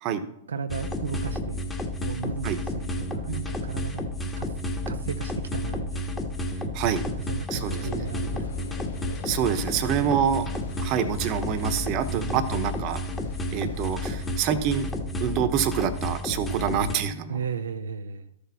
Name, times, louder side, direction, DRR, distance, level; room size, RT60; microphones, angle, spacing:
voice 1, 0.5-1.6 2.0-4.0 4.4-4.6 4.9-6.2 7.2-8.8 9.9-10.3 12.1-12.5 17.3-18.3, right 6 dB, 80° right, 9 dB, 0.6 m, -35 dB
sound 1, 0.7-16.9, left 1 dB, 15° left, 1.5 m, -31 dB
sound 2, 7.5-14.9, left 8 dB, 70° left, 0.9 m, -43 dB
voice 2, 7.5-8.0 9.2-10.5 10.8-13.0 13.5-14.9 15.2-17.4, right 8 dB, 45° right, 10 dB, 1.1 m, -26 dB
13.5 x 6.4 x 4.2 m, 0.78 s
hypercardioid pair, 110°, 0 cm